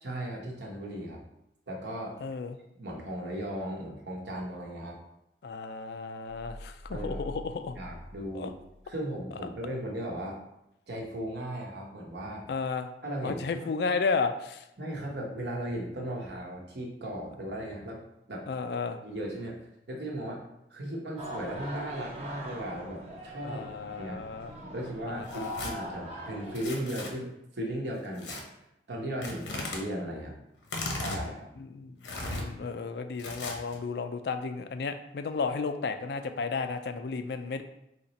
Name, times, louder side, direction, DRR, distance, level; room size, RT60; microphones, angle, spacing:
voice 1, 0.0-1.2 1.7-2.2 2.8-5.0 6.9-7.2 7.8-8.5 8.8-10.4 10.9-12.5 13.0-13.7 14.8-18.0 18.3-18.4 19.0-19.6 19.9-20.4 20.7-23.6 24.0-24.2 24.6-28.4 28.9-30.3 30.9-31.5, right 1 dB, 65° right, -1 dB, 1.0 m, -36 dB
voice 2, 2.2-2.6 5.4-7.8 8.3-8.5 12.5-12.9 13.2-14.6 18.5-19.0 23.4-24.5 25.1-25.5 31.6-37.6, left 4 dB, 60° left, 9 dB, 0.4 m, -33 dB
sound 1, 6.3-9.0, left 1 dB, 5° right, 0.8 m, -44 dB
sound 2, 21.2-26.6, equal, 35° right, 0.9 m, -41 dB
Tearing, 25.2-25.7 26.5-27.1 28.2-28.4 29.2-29.8 30.6-31.2 32.0-32.4 33.2-33.8, left 2 dB, 80° left, 0.9 m, -36 dB
4.0 x 3.0 x 4.1 m, 0.84 s
head